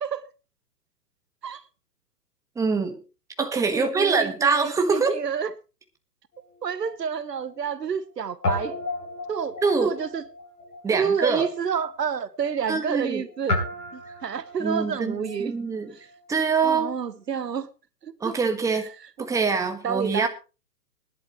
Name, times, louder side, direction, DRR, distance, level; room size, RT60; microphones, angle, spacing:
voice 1, 0.0-0.3 1.4-1.6 3.7-5.5 6.6-8.8 9.3-9.5 9.8-10.2 10.9-13.6 13.9-15.5 15.9-16.0 16.6-17.7 18.0-18.4 19.2-19.3 19.8-20.3, right 7 dB, 80° right, 1.3 m, -29 dB
voice 2, 2.5-3.0 3.4-5.1 9.6-9.9 10.8-11.5 12.7-13.2 14.6-15.9 16.3-16.9 18.2-18.9 19.2-20.3, right 4 dB, 5° right, 1.5 m, -24 dB
Guitar, 6.3-8.1 8.4-17.1, left 2 dB, 70° left, 6.2 m, -35 dB
20.5 x 11.0 x 3.1 m
hypercardioid pair, 130°, 48 cm